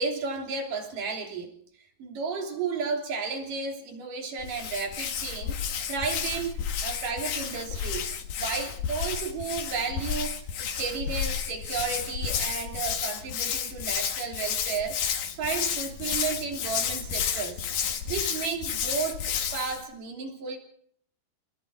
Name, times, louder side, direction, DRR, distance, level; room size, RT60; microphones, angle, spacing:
voice 1, 0.0-1.5 2.0-5.6 5.9-8.1 8.4-15.0 15.4-17.6 18.1-20.6, right 5 dB, 55° right, 2 dB, 4.7 m, -33 dB
Hands, 4.4-19.8, left 8 dB, 65° left, 3.3 m, -31 dB
29.0 x 19.5 x 4.5 m, 0.62 s
omnidirectional pair, 4.7 m